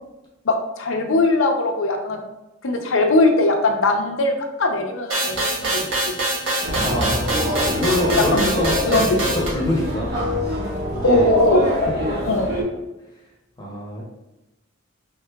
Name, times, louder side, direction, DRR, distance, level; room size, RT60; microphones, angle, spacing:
voice 1, 0.4-2.2 2.6-4.3 4.6-6.2 8.2-8.4 8.9-9.2 11.0-11.6 12.3-12.5, left 2 dB, 80° left, 3 dB, 0.6 m, -20 dB
sound 1, 5.1-9.5, right 1 dB, 80° right, 1.2 m, -24 dB
sound 2, 6.6-12.6, equal, 55° right, 1.3 m, -25 dB
voice 2, 6.7-9.1 9.3-10.2 10.9-11.3 13.6-14.0, left 1 dB, 20° left, -3 dB, 0.8 m, -25 dB
4.7 x 3.6 x 2.3 m, 0.99 s
head